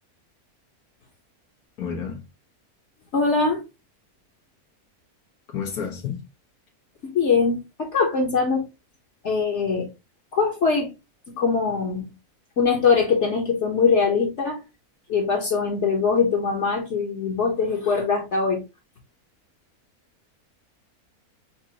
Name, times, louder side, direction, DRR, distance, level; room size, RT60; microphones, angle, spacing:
voice 1, 1.8-2.2 5.5-6.2, left 7 dB, 85° left, 1.5 m, -30 dB
voice 2, 3.1-3.6 7.0-8.7 9.2-9.9 10.3-10.9 11.4-12.1 12.6-14.6 15.1-18.6, left 5 dB, 55° left, 1.2 m, -22 dB
6.0 x 2.5 x 2.8 m
omnidirectional pair, 1.6 m